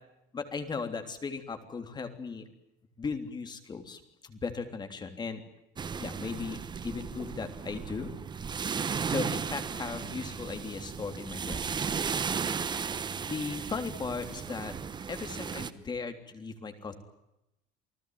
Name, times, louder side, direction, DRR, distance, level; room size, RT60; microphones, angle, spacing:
voice 1, 0.3-2.4 3.0-5.4 6.0-8.1 9.0-11.6 12.7-12.9 13.2-14.7 15.1-16.9, left 4 dB, 20° left, 7 dB, 3.4 m, -37 dB
sound 1, 5.8-15.7, right 6 dB, 20° right, 1.1 m, -35 dB
29.5 x 19.0 x 9.4 m, 0.88 s
cardioid pair, 155°, 21 cm